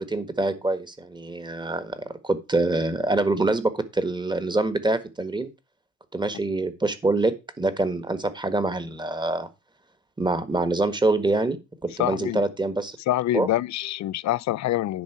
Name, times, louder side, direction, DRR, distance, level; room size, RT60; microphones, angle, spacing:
voice 1, 0.0-5.5 6.1-9.5 10.2-13.0 13.3-13.5, right 2 dB, 15° right, 1.5 m, -25 dB
voice 2, 12.0-12.4 13.1-15.0, left 14 dB, 65° left, 0.5 m, -25 dB
10.5 x 4.1 x 7.3 m
cardioid pair, 90°, 30 cm